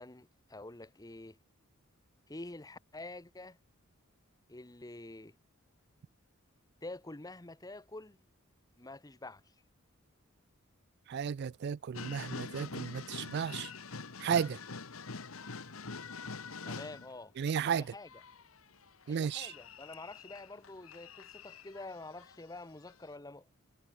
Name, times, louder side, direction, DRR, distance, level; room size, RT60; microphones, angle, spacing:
voice 1, 0.0-1.4 2.3-3.6 4.5-5.3 6.8-8.2 8.8-9.5 16.6-17.3 17.7-18.1 19.1-23.5, left 2 dB, 15° left, 1.0 m, -47 dB
voice 2, 11.1-13.7 14.2-14.6 17.4-17.9 19.1-19.5, right 7 dB, 50° right, 0.3 m, -33 dB
sound 1, 11.9-17.2 17.6-22.6 22.9-23.0, left 4 dB, 80° left, 1.6 m, -45 dB
head